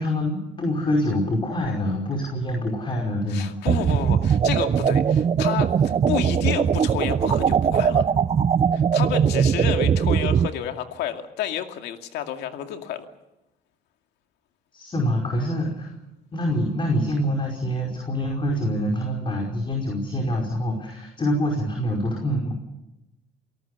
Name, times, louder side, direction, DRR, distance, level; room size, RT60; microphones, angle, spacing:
voice 1, 0.0-3.5 14.7-15.9 16.3-22.6, equal, 30° left, 1 dB, 5.1 m, -25 dB
voice 2, 3.3-8.1 8.7-13.1, left 10 dB, 85° left, 6 dB, 2.4 m, -30 dB
sound 1, 3.7-10.5, right 7 dB, 35° right, 0.9 m, -20 dB
29.0 x 18.5 x 6.8 m, 0.94 s
cardioid pair, 110°, 17 cm